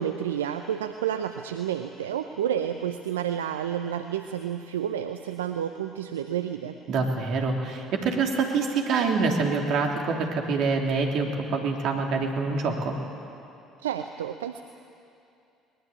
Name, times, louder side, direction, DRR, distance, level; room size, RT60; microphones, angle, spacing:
voice 1, 0.0-6.8 13.8-14.6, right 9 dB, 80° right, 8 dB, 0.6 m, -30 dB
voice 2, 6.9-13.0, right 4 dB, 60° right, 1 dB, 3.2 m, -26 dB
21.5 x 20.5 x 8.6 m, 2.6 s
hypercardioid pair, 55°, 0 cm